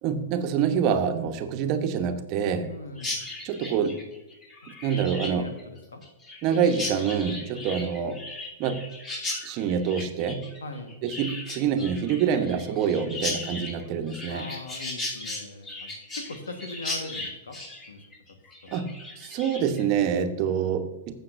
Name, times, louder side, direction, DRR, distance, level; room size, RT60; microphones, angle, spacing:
voice 1, 0.0-2.7 3.4-4.0 4.8-5.5 6.4-8.2 8.6-8.9 9.4-10.5 11.0-14.4 18.7-21.2, right 7 dB, 45° right, 7 dB, 1.0 m, -26 dB
voice 2, 2.7-3.2 4.8-6.0 7.5-7.7 10.6-10.9 14.3-15.9 16.2-17.6 17.9-18.0 18.6-18.8, left 2 dB, 85° left, 6 dB, 1.4 m, -40 dB
Chirp tweet, 3.0-19.8, left 2 dB, 30° left, 3.6 m, -36 dB
15.5 x 6.9 x 2.6 m, 1.0 s
hypercardioid pair, 110°, 0 cm